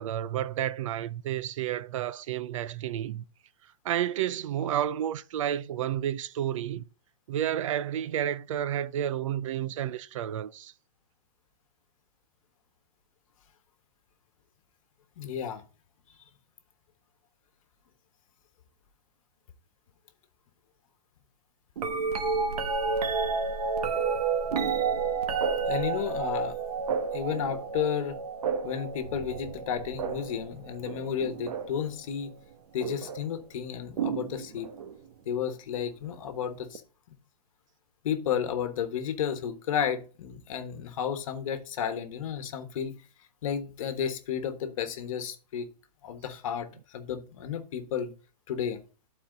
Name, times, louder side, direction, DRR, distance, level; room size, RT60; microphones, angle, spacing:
voice 1, 0.0-3.2 3.8-6.8 7.3-10.7, right 11 dB, 50° right, 0.5 m, -31 dB
voice 2, 15.2-15.6 16.1-16.2 25.7-26.6 26.9-28.2 28.6-32.3 32.7-34.7 35.2-36.8 38.0-43.0 43.4-45.7 46.0-48.1 48.5-48.8, left 8 dB, 55° left, 1.4 m, -32 dB
sound 1, 21.8-31.9 32.8-33.2 34.0-35.0 36.7-36.8, right 5 dB, 65° right, 1.2 m, -30 dB
11.5 x 4.4 x 3.9 m
hypercardioid pair, 160°, 21 cm